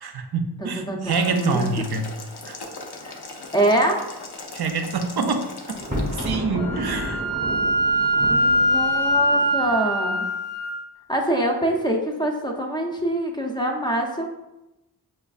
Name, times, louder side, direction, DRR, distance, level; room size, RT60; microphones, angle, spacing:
voice 1, 0.0-2.1 2.4-2.6 4.5-5.5 6.1-7.2, right 4 dB, 65° right, 6 dB, 0.5 m, -26 dB
voice 2, 0.6-1.9 3.0-3.2 3.5-4.0 8.3-10.2 11.1-14.5, right 1 dB, 10° left, 2 dB, 0.5 m, -24 dB
Boiling, 1.1-6.3, left 3 dB, 65° left, 0.6 m, -39 dB
Thunder, 5.7-9.8, equal, 20° right, 0.8 m, -31 dB
Wind instrument woodwind instrument, 6.5-10.7, equal, 85° left, 1.2 m, -22 dB
5.0 x 2.3 x 2.4 m, 0.96 s
wide cardioid pair, 55°, 42 cm